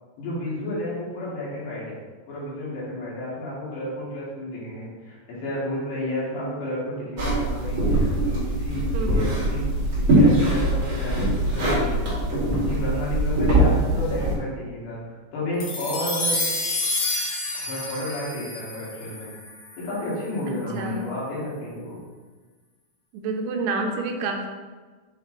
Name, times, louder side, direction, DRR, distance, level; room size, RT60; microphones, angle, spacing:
voice 1, 0.2-2.0 2.3-12.2 12.7-16.5 17.5-19.3 19.8-22.0, left 1 dB, 70° left, -8 dB, 3.8 m, -31 dB
sound 1, 7.2-14.4, right 1 dB, 40° right, 1.9 m, -22 dB
voice 2, 8.9-9.4 20.5-21.1 23.1-24.5, right 3 dB, 80° right, 3 dB, 2.4 m, -29 dB
sound 2, 15.6-20.1, left 2 dB, 85° left, 1.5 m, -29 dB
7.9 x 3.3 x 3.8 m, 1.4 s
omnidirectional pair, 5.0 m